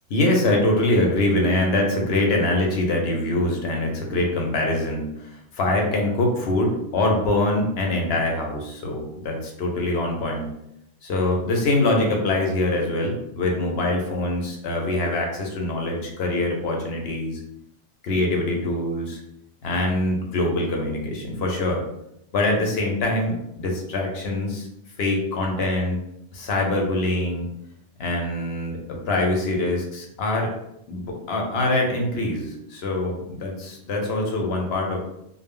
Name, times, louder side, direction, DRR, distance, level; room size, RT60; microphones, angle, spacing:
voice 1, 0.1-10.5 11.0-17.4 18.0-19.2 19.6-21.8 22.3-24.7 25.0-26.0 26.3-27.5 28.0-30.5 30.9-35.0, left 2 dB, 65° left, 1 dB, 0.8 m, -24 dB
2.0 x 2.0 x 3.5 m, 0.81 s
omnidirectional pair, 1.2 m